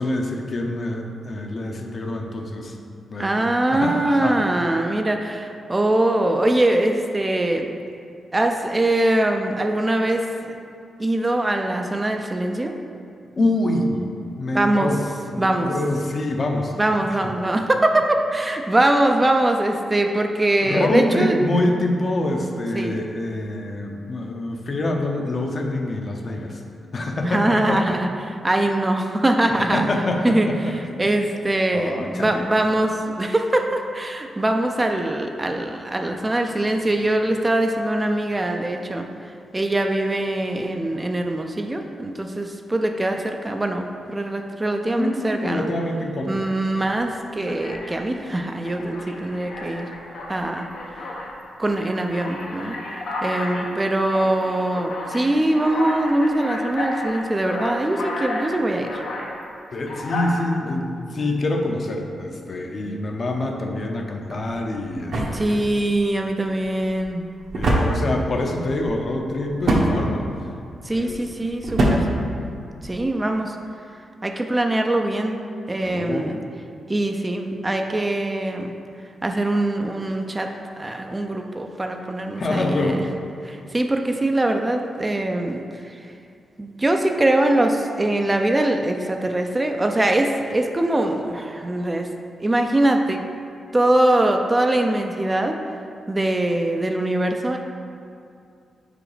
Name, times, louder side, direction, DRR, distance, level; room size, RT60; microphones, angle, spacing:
voice 1, 0.0-2.8 3.1-4.4 13.3-15.0 15.3-16.7 20.6-26.6 26.9-28.0 29.5-31.0 31.7-32.5 45.0-46.4 59.7-65.7 67.5-70.2 70.9-71.4 75.8-76.3 82.4-83.0, left 2 dB, 45° left, 2 dB, 0.7 m, -26 dB
voice 2, 3.2-7.7 8.3-10.5 11.0-12.8 14.5-14.9 15.4-15.7 16.8-21.4 22.8-23.1 27.2-29.8 30.2-30.5 31.0-39.1 39.5-45.7 46.3-49.9 50.3-50.7 51.6-59.0 65.3-67.3 70.8-72.1 72.8-73.6 74.2-75.4 75.7-76.4 76.9-78.7 79.2-83.1 83.4-86.1 86.6-92.1 92.4-93.2 93.7-95.6 96.1-97.6, right 1 dB, 20° right, 4 dB, 0.4 m, -22 dB
Alarm, 46.8-47.0 47.5-48.1 48.6-51.3 51.7-59.3 59.8-60.3, left 2 dB, 85° left, 0.9 m, -32 dB
sound 1, 64.2-73.1, right 1 dB, 65° right, 1.0 m, -26 dB
5.0 x 4.8 x 4.9 m, 2.4 s
cardioid pair, 95°, 0 cm